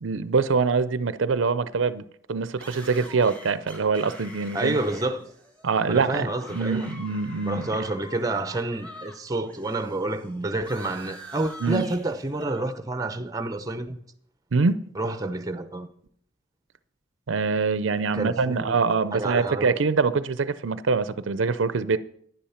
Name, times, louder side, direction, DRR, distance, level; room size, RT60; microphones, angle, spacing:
voice 1, 0.0-2.0 2.3-4.8 5.6-7.8 11.6-11.9 14.5-14.8 17.3-22.0, right 4 dB, 75° right, 0.5 m, -24 dB
sound 1, 2.6-9.2 9.4-12.6, equal, 5° left, 1.8 m, -45 dB
voice 2, 4.5-5.3 5.9-6.9 7.5-14.0 14.9-15.9 18.1-18.8 19.1-19.7, right 2 dB, 20° right, 0.7 m, -29 dB
10.5 x 10.5 x 5.7 m
head